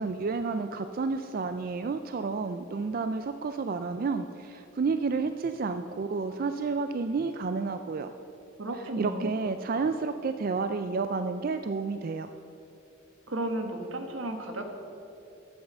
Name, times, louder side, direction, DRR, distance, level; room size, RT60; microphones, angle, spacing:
voice 1, 0.0-8.1 9.0-12.3, right 4 dB, 45° right, 9 dB, 0.4 m, -30 dB
voice 2, 8.6-9.3 13.3-14.7, right 1 dB, 85° right, 5 dB, 1.4 m, -33 dB
11.0 x 8.1 x 6.8 m, 2.8 s
head